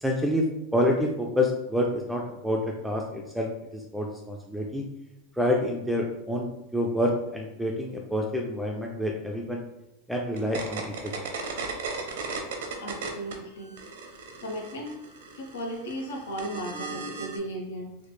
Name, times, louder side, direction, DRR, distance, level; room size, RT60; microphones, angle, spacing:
voice 1, 0.0-4.8 5.4-9.6 10.1-11.3, left 1 dB, ahead, 0 dB, 0.3 m, -28 dB
sound 1, 10.4-13.3 13.6-17.4, right 4 dB, 80° right, 0.6 m, -36 dB
voice 2, 12.8-14.1 14.4-14.9 15.3-18.0, right 1 dB, 90° left, 1 dB, 0.8 m, -36 dB
3.1 x 2.0 x 3.2 m, 0.90 s
supercardioid pair, 125°, 0 cm